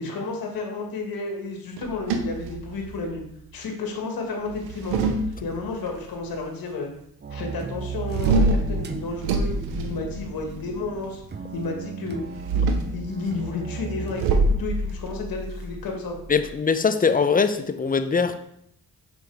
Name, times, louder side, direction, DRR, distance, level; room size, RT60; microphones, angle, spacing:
voice 1, 0.0-3.2 3.5-5.0 5.4-6.9 7.3-11.2 11.5-12.2 12.5-16.2, left 3 dB, 70° left, 2 dB, 1.7 m, -32 dB
sound 1, 1.8-3.2 4.5-5.9 8.1-10.7 12.3-13.0 14.2-16.5, right 2 dB, 90° right, 0.7 m, -25 dB
sound 2, 7.2-14.3, right 5 dB, 30° right, 0.7 m, -36 dB
voice 2, 16.3-18.4, left 5 dB, 25° left, 10 dB, 0.6 m, -22 dB
6.1 x 4.7 x 3.4 m, 0.74 s
supercardioid pair, 50°, 36 cm